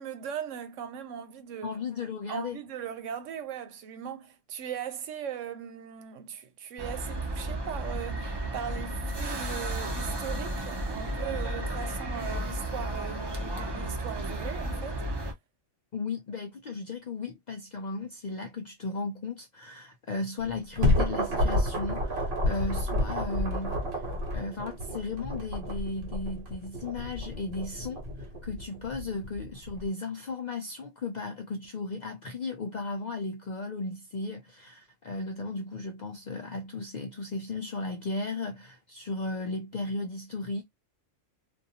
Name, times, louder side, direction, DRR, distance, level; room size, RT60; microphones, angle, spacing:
voice 1, 0.0-1.8 2.3-15.0, right 8 dB, 85° right, 1.0 m, -39 dB
voice 2, 1.6-2.6 15.9-24.0 24.3-40.6, left 3 dB, 65° left, 0.4 m, -35 dB
sound 1, 6.8-15.3, right 1 dB, 30° right, 0.5 m, -33 dB
sound 2, 20.4-29.9, left 1 dB, 55° right, 1.1 m, -30 dB
2.5 x 2.3 x 2.7 m
omnidirectional pair, 1.3 m